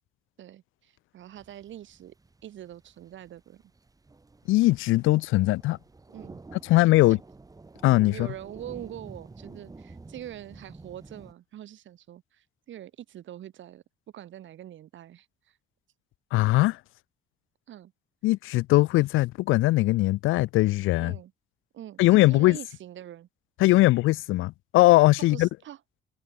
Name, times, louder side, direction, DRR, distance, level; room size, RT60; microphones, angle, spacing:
voice 1, 0.4-2.1 2.4-3.7 6.1-6.4 7.1-7.2 8.1-13.8 14.1-15.6 17.7-17.9 21.0-21.3 21.7-23.3 25.2-25.8, right 12 dB, 70° right, 2.6 m, -44 dB
sound 1, 1.4-11.3, right 3 dB, 20° right, 1.2 m, -49 dB
voice 2, 4.5-5.8 6.7-7.2 7.8-8.3 16.3-16.8 18.2-21.1 22.0-22.6 23.6-25.5, left 18 dB, 90° left, 0.5 m, -20 dB
cardioid pair, 90°, 20 cm